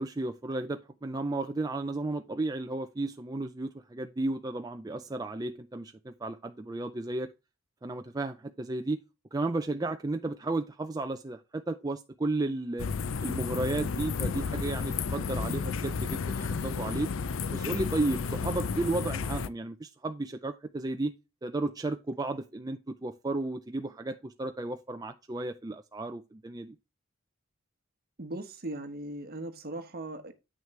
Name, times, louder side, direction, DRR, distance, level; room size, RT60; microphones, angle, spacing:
voice 1, 0.0-7.3 7.8-9.0 9.3-12.9 13.2-17.1 17.5-21.1 21.4-26.8, right 2 dB, 20° right, 0.5 m, -33 dB
sound 1, 12.8-19.5, left 5 dB, 70° left, 0.5 m, -32 dB
voice 2, 28.2-30.3, right 1 dB, 50° right, 1.2 m, -38 dB
8.8 x 6.3 x 3.2 m
head